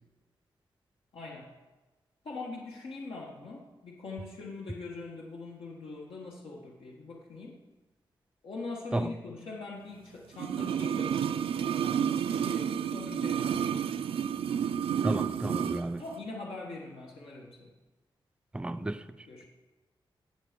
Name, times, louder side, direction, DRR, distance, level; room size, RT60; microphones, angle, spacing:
voice 1, 1.1-1.5 2.2-7.6 8.4-14.1 16.0-17.7 19.3-19.5, left 3 dB, 85° left, -2 dB, 1.4 m, -42 dB
sound 1, 10.3-15.8 16.1-16.2, right 8 dB, 90° right, 0.4 m, -30 dB
voice 2, 15.0-16.1 18.5-19.3, right 2 dB, 10° right, 10 dB, 0.4 m, -33 dB
17.5 x 6.8 x 5.1 m, 1.2 s
wide cardioid pair, 125°, 9 cm